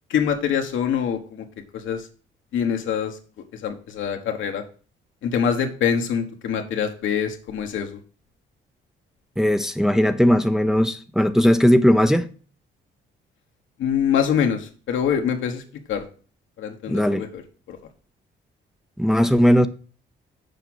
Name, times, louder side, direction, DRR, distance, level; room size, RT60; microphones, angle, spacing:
voice 1, 0.1-1.4 1.7-2.1 2.5-3.2 3.5-4.6 5.2-8.0 13.8-15.6 15.9-16.0 16.6-17.4 17.7-17.8, left 8 dB, 75° left, 1.3 m, -24 dB
voice 2, 9.4-12.3 16.9-17.2 19.0-19.7, equal, ahead, 0.5 m, -18 dB
6.8 x 5.0 x 6.1 m
cardioid pair, 90°, 20 cm